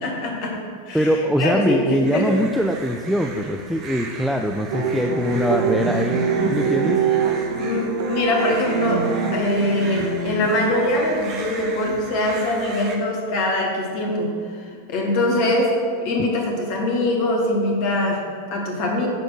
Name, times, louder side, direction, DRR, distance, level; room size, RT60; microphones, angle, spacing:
voice 1, 0.0-1.1 1.4-2.4 7.6-19.1, left 1 dB, 45° left, 0 dB, 2.0 m, -23 dB
voice 2, 0.9-7.0, equal, ahead, 3 dB, 0.4 m, -22 dB
sound 1, 2.0-13.0, right 3 dB, 35° right, 1.3 m, -38 dB
sound 2, 4.7-10.7, right 5 dB, 55° right, 1.0 m, -24 dB
10.5 x 4.3 x 6.2 m, 2.2 s
figure-of-eight pair, 90°, 0 cm